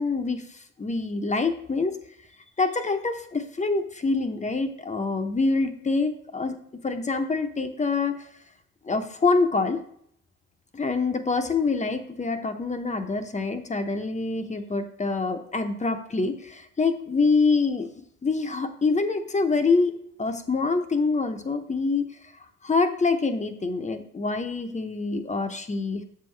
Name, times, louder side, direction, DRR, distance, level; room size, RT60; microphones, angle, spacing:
voice 1, 0.0-2.0 2.6-8.2 8.8-9.8 10.7-17.9 18.2-19.9 20.2-22.1 22.6-26.0, left 3 dB, 25° left, 7 dB, 0.7 m, -25 dB
6.7 x 5.6 x 3.2 m, 0.69 s
cardioid pair, 85°, 31 cm